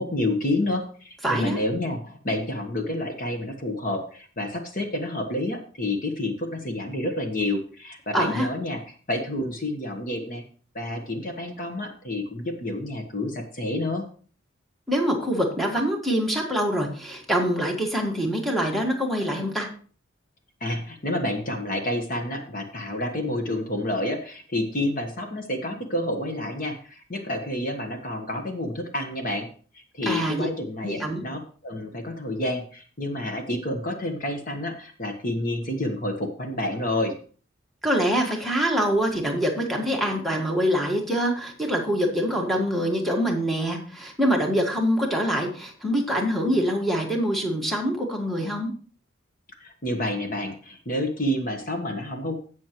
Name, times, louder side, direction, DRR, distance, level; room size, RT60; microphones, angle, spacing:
voice 1, 0.0-8.8 9.1-10.4 10.7-14.0 20.6-29.5 29.7-37.2 49.6-52.4, left 1 dB, 40° left, 4 dB, 1.2 m, -29 dB
voice 2, 1.2-1.6 8.1-8.5 14.9-19.7 30.0-30.5 30.8-31.2 37.8-48.7, equal, ahead, 0 dB, 1.7 m, -25 dB
16.5 x 6.3 x 3.0 m, 0.42 s
head